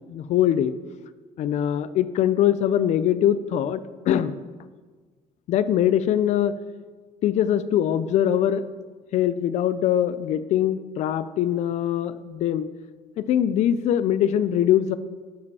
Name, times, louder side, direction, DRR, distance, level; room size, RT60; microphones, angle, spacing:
voice 1, 0.1-0.7 1.4-3.8 4.1-4.4 5.5-6.5 7.2-8.6 9.1-12.7 13.2-15.0, left 10 dB, 55° left, 14 dB, 0.4 m, -22 dB
12.5 x 5.0 x 4.8 m, 1.4 s
cardioid pair, 170°, 14 cm